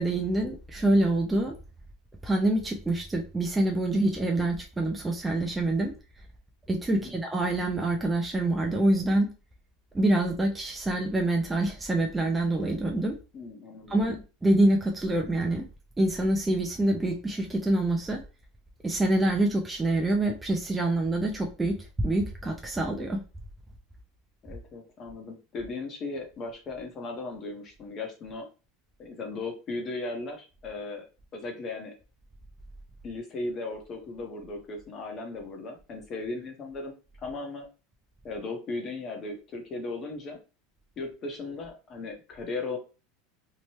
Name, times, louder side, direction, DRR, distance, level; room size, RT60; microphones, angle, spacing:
voice 1, 0.0-1.5 2.2-5.9 6.7-9.3 9.9-13.1 13.9-15.7 16.0-18.2 18.8-23.2, right 1 dB, 10° right, 1 dB, 0.3 m, -26 dB
voice 2, 13.3-14.0 24.4-28.4 29.0-31.0 31.3-31.9 33.0-37.7 38.2-40.4 41.0-42.8, left 3 dB, 30° left, 3 dB, 0.7 m, -37 dB
2.8 x 2.1 x 3.0 m, 0.32 s
supercardioid pair, 155°, 0 cm